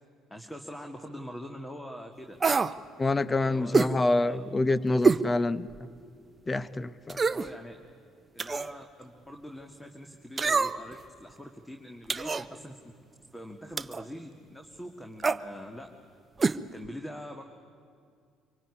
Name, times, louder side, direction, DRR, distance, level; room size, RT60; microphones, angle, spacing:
voice 1, 0.3-2.4 3.4-4.4 7.3-7.8 8.3-12.8 13.3-15.9 16.7-17.4, equal, 10° left, 4 dB, 2.1 m, -43 dB
sound 1, 2.4-2.8 3.7-4.0 5.0-5.3 5.8-5.9 7.1-7.5 8.4-8.7 10.4-10.9 12.1-12.5 13.8-14.0 15.2-15.4 16.4-16.6 16.9-17.0, right 4 dB, 30° right, 0.8 m, -25 dB
voice 2, 3.0-5.7 6.5-7.2, left 2 dB, 25° left, 17 dB, 0.9 m, -27 dB
25.0 x 24.0 x 9.9 m, 2.3 s
hypercardioid pair, 55°, 0 cm